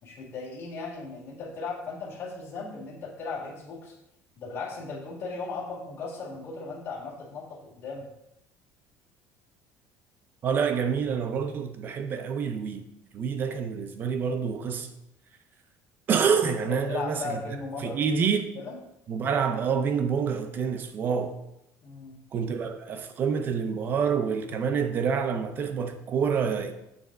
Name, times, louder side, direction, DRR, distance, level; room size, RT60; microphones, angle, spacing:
voice 1, 0.0-3.9 4.3-8.0 16.7-18.3 18.5-18.8 21.8-22.1, left 4 dB, 40° left, 1.8 m, -37 dB
voice 2, 10.4-12.8 13.1-14.9 16.1-17.4 17.8-18.5 19.1-21.4 22.3-26.7, right 6 dB, 35° right, 0.5 m, -27 dB
7.2 x 3.4 x 6.3 m
cardioid pair, 175°, 6 cm